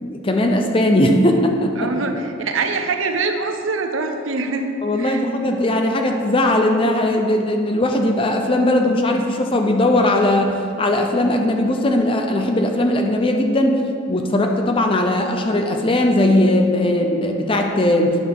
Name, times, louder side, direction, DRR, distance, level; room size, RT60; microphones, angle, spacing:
voice 1, 0.0-1.9 4.8-10.5 10.8-13.8 14.1-18.2, left 1 dB, 25° left, 3 dB, 0.5 m, -18 dB
voice 2, 1.8-5.2, right 3 dB, 75° right, 5 dB, 0.7 m, -24 dB
9.5 x 6.0 x 3.5 m, 2.6 s
head